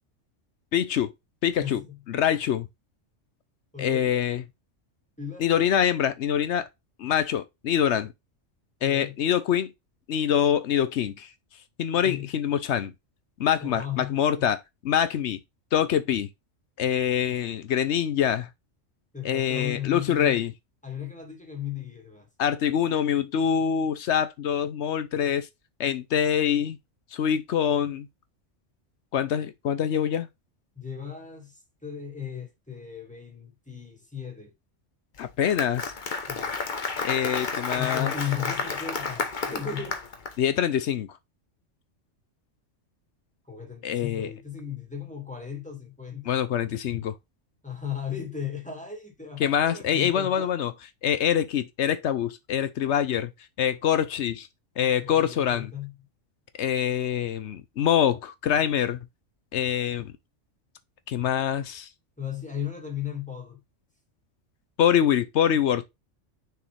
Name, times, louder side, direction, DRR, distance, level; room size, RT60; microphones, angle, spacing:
voice 1, 0.7-1.1 1.4-1.8 2.1-2.7 3.8-4.4 5.4-6.7 7.0-8.1 8.8-9.7 10.1-11.3 11.8-12.9 13.4-14.6 14.8-15.4 15.7-16.3 16.8-18.5 19.2-20.5 22.4-25.5 25.8-26.8 27.1-28.1 29.1-30.3 35.2-35.9 37.0-38.1 40.4-41.1 43.8-44.3 46.3-47.1 49.4-50.7 51.0-53.3 53.6-54.5 54.8-55.7 56.6-59.0 59.5-60.1 61.1-61.9 64.8-65.8, left 9 dB, 65° left, 0.9 m, -25 dB
voice 2, 1.6-2.0 3.7-4.2 5.2-5.5 8.8-9.2 12.0-12.3 13.6-14.5 19.1-20.4 20.8-22.3 30.8-34.5 36.3-36.5 37.8-40.0 43.5-46.4 47.6-50.5 54.8-55.9 62.2-63.6, left 8 dB, 5° left, 2.0 m, -36 dB
Applause, 35.2-40.3, left 4 dB, 40° left, 1.1 m, -31 dB
6.3 x 4.7 x 3.3 m
omnidirectional pair, 1.3 m